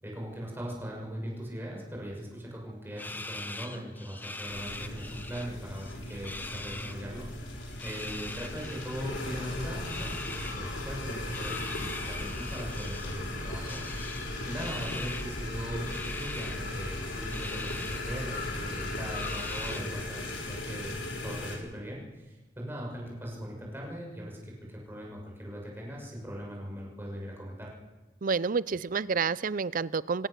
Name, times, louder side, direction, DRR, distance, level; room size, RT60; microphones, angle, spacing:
voice 1, 0.0-21.0 21.2-27.7, equal, 10° right, -2 dB, 6.6 m, -40 dB
sound 1, 3.0-5.5 5.7-6.9 7.7-9.0 9.8-10.6 11.3-13.2 13.6-15.3 15.9-16.6 17.3-18.0 18.4-18.5 19.1-20.0, left 2 dB, 10° left, 1.0 m, -41 dB
sound 2, 4.5-21.6, left 2 dB, 80° left, 5.1 m, -38 dB
sound 3, 9.0-19.7, left 1 dB, 50° left, 5.3 m, -41 dB
voice 2, 28.2-30.3, right 5 dB, 50° right, 19 dB, 0.5 m, -29 dB
22.5 x 17.5 x 6.8 m, 1.2 s
head